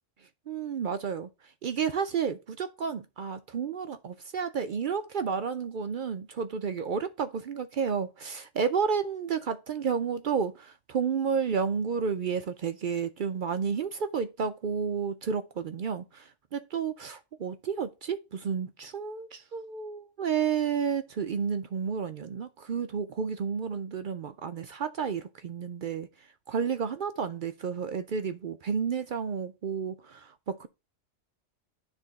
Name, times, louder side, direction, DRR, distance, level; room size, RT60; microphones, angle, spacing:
voice 1, 0.5-1.3 1.6-30.7, right 6 dB, 65° right, 0.5 m, -31 dB
9.8 x 3.5 x 4.0 m
omnidirectional pair, 1.3 m